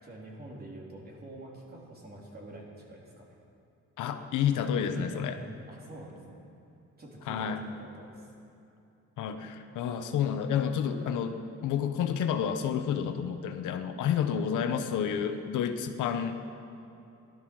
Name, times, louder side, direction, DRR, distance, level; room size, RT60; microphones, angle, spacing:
voice 1, 0.0-3.3 4.9-6.2 7.0-8.3, right 1 dB, 30° right, -3 dB, 3.7 m, -46 dB
voice 2, 4.0-5.4 7.3-7.6 9.2-16.4, left 8 dB, 85° left, 7 dB, 1.0 m, -30 dB
15.5 x 12.5 x 6.3 m, 2.8 s
cardioid pair, 90°, 30 cm